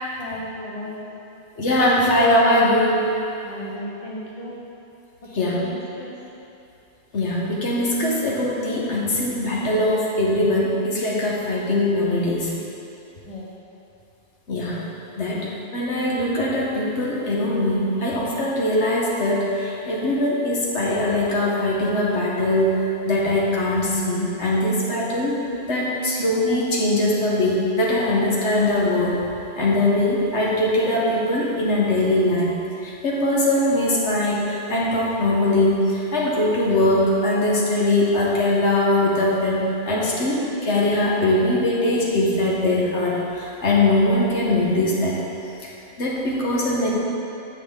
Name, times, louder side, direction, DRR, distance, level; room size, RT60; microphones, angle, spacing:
voice 1, 0.2-1.1 3.4-4.5 5.3-6.1 13.3-13.5, left 1 dB, 35° left, -4 dB, 1.0 m, -35 dB
voice 2, 1.6-3.1 5.4-5.6 7.1-12.5 14.5-14.8 15.2-25.4 25.7-29.2 29.6-32.5 32.8-45.3 45.6-45.7 46.0-46.9, left 1 dB, 80° left, -5 dB, 1.4 m, -21 dB
8.1 x 5.7 x 3.6 m, 2.8 s
omnidirectional pair, 1.2 m